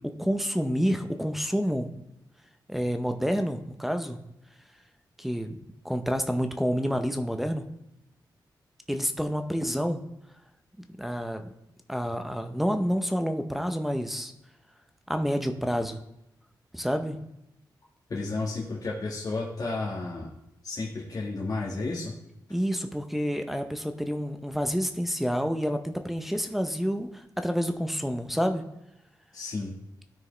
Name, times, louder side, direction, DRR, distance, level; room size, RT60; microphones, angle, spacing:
voice 1, 0.2-1.9 2.7-4.2 5.2-5.6 5.8-7.7 8.9-10.0 10.8-11.4 11.9-14.3 15.1-16.0 16.7-17.2 22.5-28.6, equal, 5° right, 6 dB, 0.6 m, -28 dB
voice 2, 18.1-20.3 20.6-22.1 29.3-29.7, left 3 dB, 50° left, -5 dB, 1.6 m, -32 dB
12.5 x 4.5 x 3.3 m, 0.84 s
cardioid pair, 90°, 8 cm